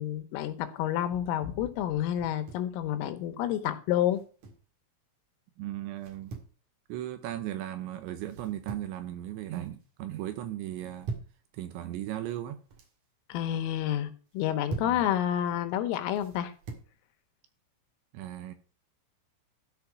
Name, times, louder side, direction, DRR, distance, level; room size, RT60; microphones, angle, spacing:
voice 1, 0.0-4.2 13.3-16.5, left 11 dB, 85° left, 3.6 m, -29 dB
sound 1, 2.2-2.7 4.1-4.7 6.0-6.6 8.3-9.0 9.4-9.9 10.7-11.4 12.4-13.0 14.3-15.0 16.2-16.9, right 4 dB, 55° right, 2.2 m, -42 dB
voice 2, 5.6-6.3 6.9-11.1 11.5-12.6 14.8-15.0 18.1-18.5, right 13 dB, 80° right, 2.9 m, -37 dB
13.0 x 4.6 x 5.9 m
omnidirectional pair, 5.9 m